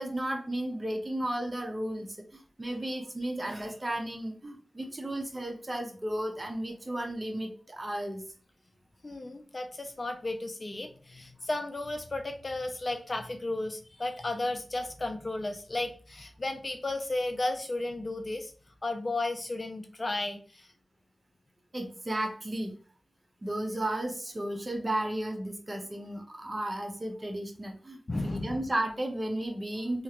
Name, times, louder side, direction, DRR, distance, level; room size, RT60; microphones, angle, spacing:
voice 1, 0.0-8.2 21.7-22.7 23.4-30.0, right 1 dB, 30° right, 3 dB, 0.7 m, -34 dB
voice 2, 9.0-18.5 18.8-20.7 28.1-28.6, left 2 dB, 40° left, 6 dB, 0.4 m, -34 dB
2.9 x 2.4 x 2.9 m, 0.40 s
wide cardioid pair, 80°, 0 cm